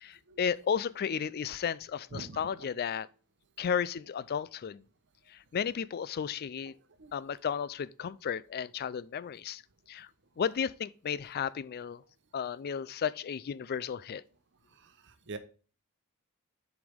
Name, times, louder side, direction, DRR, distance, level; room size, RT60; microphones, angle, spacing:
voice 1, 0.0-3.1 3.6-4.8 5.5-6.7 7.1-9.6 9.9-10.1 10.4-12.0 12.3-14.2, left 7 dB, 45° left, 0.3 m, -33 dB
voice 2, 14.8-15.4, right 3 dB, 55° right, 0.9 m, -44 dB
8.0 x 5.2 x 3.5 m
head